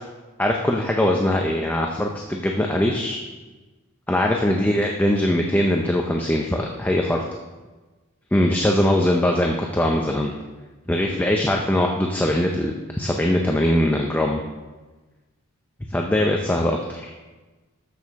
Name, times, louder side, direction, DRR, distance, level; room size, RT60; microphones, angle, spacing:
voice 1, 0.4-3.2 4.1-7.2 8.3-10.3 10.9-14.4 15.9-17.1, left 1 dB, 10° left, 1 dB, 0.5 m, -21 dB
13.0 x 6.4 x 3.6 m, 1.2 s
head